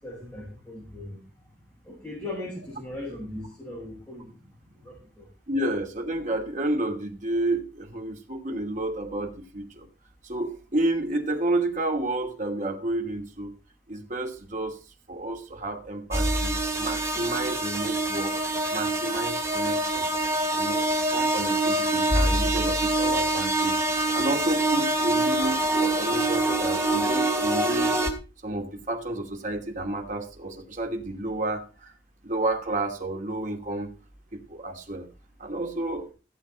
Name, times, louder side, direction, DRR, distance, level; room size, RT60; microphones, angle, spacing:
voice 1, 0.0-1.2 1.8-4.3 4.8-5.3, left 1 dB, 10° left, -7 dB, 6.2 m, -38 dB
voice 2, 5.5-9.9 10.2-13.5 13.9-14.8 15.1-18.3 18.7-20.1 20.6-20.8 21.1-23.8 24.1-28.0 28.4-31.9 32.2-33.9 34.5-35.1 35.4-36.1, right 2 dB, 45° right, 2 dB, 2.6 m, -30 dB
sound 1, 16.1-28.1, right 2 dB, 15° right, 2.2 m, -25 dB
15.5 x 8.0 x 4.4 m, 0.33 s
head